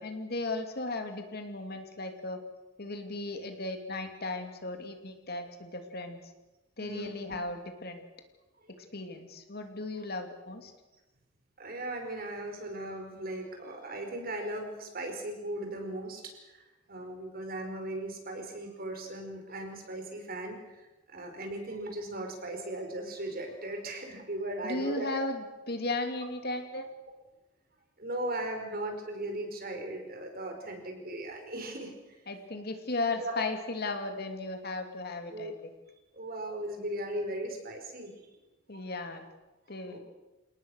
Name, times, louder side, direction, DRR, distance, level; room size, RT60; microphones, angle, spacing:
voice 1, 0.0-2.4 2.8-6.3 6.8-8.1 8.8-10.7 24.6-26.9 32.3-35.7 38.7-39.3 39.7-40.0, left 2 dB, 55° left, 6 dB, 2.9 m, -36 dB
voice 2, 6.8-7.4 8.6-8.8 11.6-16.6 16.9-20.9 21.1-25.1 28.0-31.9 33.2-33.3 35.3-35.5 36.1-38.1 38.7-38.8 39.7-40.0, right 1 dB, 50° right, 4 dB, 5.1 m, -38 dB
28.5 x 18.5 x 6.6 m, 1.1 s
head